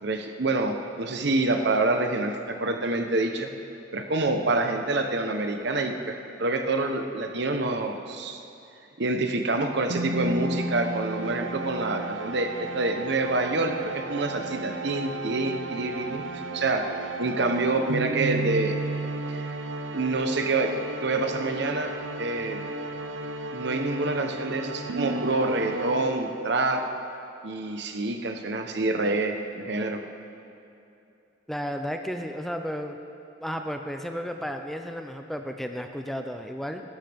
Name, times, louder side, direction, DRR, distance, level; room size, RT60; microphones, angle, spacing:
voice 1, 0.0-3.5 3.9-8.4 9.0-16.2 16.5-16.9 17.2-18.8 19.3-19.5 19.9-20.7 21.0-21.9 22.2-22.6 23.5-26.8 27.4-30.0, right 2 dB, 60° right, 5 dB, 1.0 m, -27 dB
sound 1, 9.9-26.6, right 2 dB, 85° right, 0.7 m, -33 dB
voice 2, 31.5-33.0 33.4-36.8, equal, ahead, 5 dB, 0.4 m, -33 dB
17.0 x 13.0 x 3.6 m, 2.7 s
head